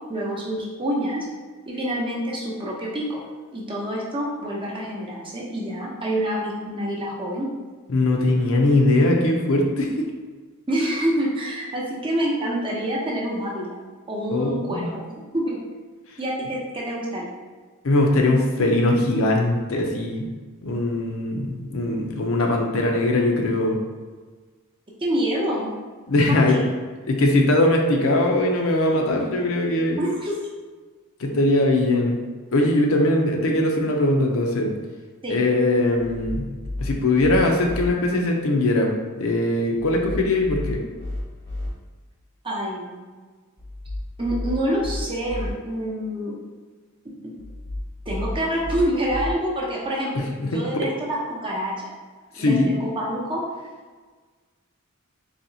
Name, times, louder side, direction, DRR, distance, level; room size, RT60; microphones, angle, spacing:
voice 1, 0.1-1.3 1.7-3.2 3.5-7.5 10.7-13.7 14.1-15.0 15.3-15.6 16.2-17.3 25.0-25.7 26.3-26.7 30.0-30.4 35.2-35.4 42.4-43.0 44.2-46.4 47.0-47.3 48.1-52.0 52.4-53.4, right 1 dB, 25° right, -3 dB, 0.7 m, -27 dB
voice 2, 7.9-10.1 14.3-14.9 17.8-20.2 20.6-23.8 26.1-26.5 27.1-30.0 31.2-32.2 32.5-34.7 35.3-36.5 36.8-40.8 50.1-50.6 52.4-52.7, left 2 dB, 70° left, 1 dB, 0.6 m, -21 dB
sound 1, 36.0-37.9 39.8-41.7 43.6-45.5 47.4-49.3, left 1 dB, 15° left, 0.8 m, -32 dB
4.1 x 2.8 x 2.7 m, 1.4 s
head